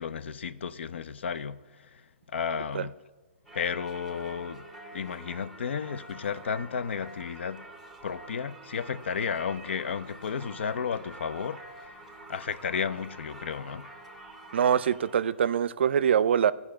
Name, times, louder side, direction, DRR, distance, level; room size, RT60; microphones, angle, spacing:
voice 1, 0.0-1.6 2.3-2.9 3.5-4.6 4.9-7.6 8.0-11.9 12.3-13.9, left 6 dB, 75° left, 0.5 m, -33 dB
Singing / Church bell, 3.5-15.4, right 1 dB, ahead, 0.8 m, -47 dB
voice 2, 14.5-16.5, right 8 dB, 70° right, 0.4 m, -24 dB
14.5 x 5.4 x 5.6 m
hypercardioid pair, 145°, 6 cm